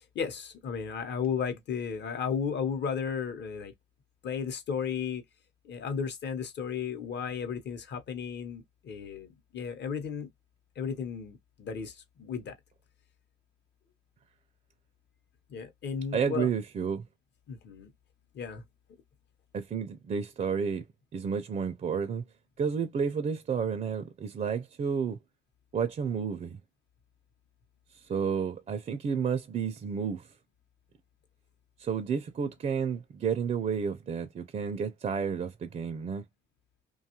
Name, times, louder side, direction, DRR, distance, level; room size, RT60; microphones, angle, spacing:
voice 1, 0.1-3.7 4.2-5.2 5.6-10.3 10.8-12.5 15.5-16.5 17.5-17.9 18.3-18.6, left 6 dB, 60° left, 0.8 m, -34 dB
voice 2, 16.1-17.0 19.5-20.8 21.1-22.2 22.6-25.2 25.7-26.6 28.1-30.3 31.8-36.2, right 6 dB, 35° right, 0.4 m, -31 dB
2.6 x 2.3 x 2.8 m
cardioid pair, 90°, 20 cm